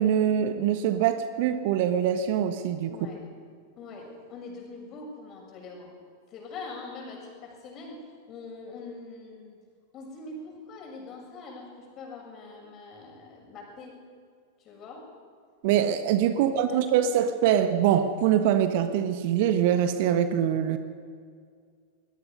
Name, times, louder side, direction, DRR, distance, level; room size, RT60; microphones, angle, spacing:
voice 1, 0.0-2.9 15.6-20.8, right 9 dB, 50° right, 9 dB, 1.2 m, -24 dB
voice 2, 2.9-3.3 3.8-6.0 6.3-9.6 9.9-14.0 14.6-15.1 16.3-16.8, left 3 dB, 35° left, 0 dB, 6.9 m, -43 dB
24.0 x 20.5 x 5.5 m, 2.1 s
figure-of-eight pair, 90°, 0 cm